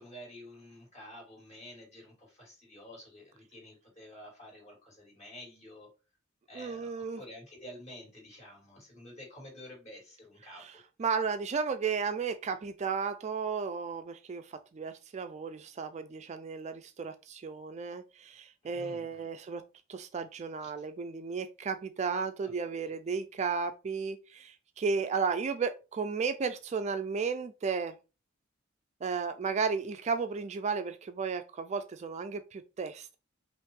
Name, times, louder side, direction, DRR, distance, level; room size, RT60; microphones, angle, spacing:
voice 1, 0.0-5.9 6.5-10.7 18.6-19.2 20.6-20.9 22.4-22.5 29.8-29.9, left 1 dB, 35° left, 2.8 m, -50 dB
voice 2, 6.5-7.2 11.0-19.6 19.9-28.0 29.0-33.2, right 5 dB, 35° right, 0.3 m, -34 dB
5.4 x 2.6 x 3.7 m
head